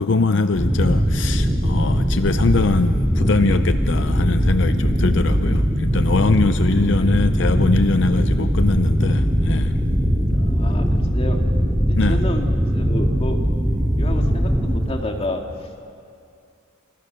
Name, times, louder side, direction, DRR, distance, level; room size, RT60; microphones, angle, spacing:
voice 1, 0.0-9.7 11.9-12.2, left 3 dB, 60° left, 10 dB, 0.6 m, -22 dB
sound 1, 0.6-14.8, equal, ahead, 3.5 m, -20 dB
voice 2, 10.1-11.4 11.9-12.5 12.7-13.4 14.0-15.4, left 1 dB, 30° left, 3 dB, 2.3 m, -30 dB
29.0 x 28.0 x 6.7 m, 2.4 s
head